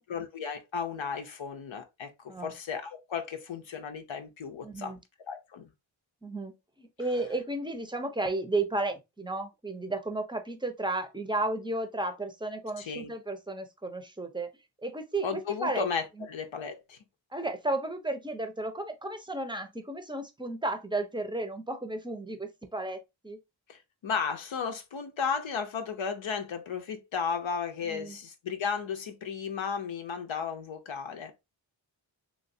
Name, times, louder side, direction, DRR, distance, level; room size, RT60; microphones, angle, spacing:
voice 1, 0.1-4.9 5.3-5.7 12.8-13.1 15.2-17.0 23.7-31.3, left 6 dB, 80° left, 0.7 m, -34 dB
voice 2, 4.6-5.0 6.2-14.5 14.8-15.9 16.2-16.3 17.3-23.4 27.9-28.2, right 2 dB, 10° right, 0.5 m, -33 dB
3.2 x 3.0 x 2.6 m
wide cardioid pair, 80°, 45 cm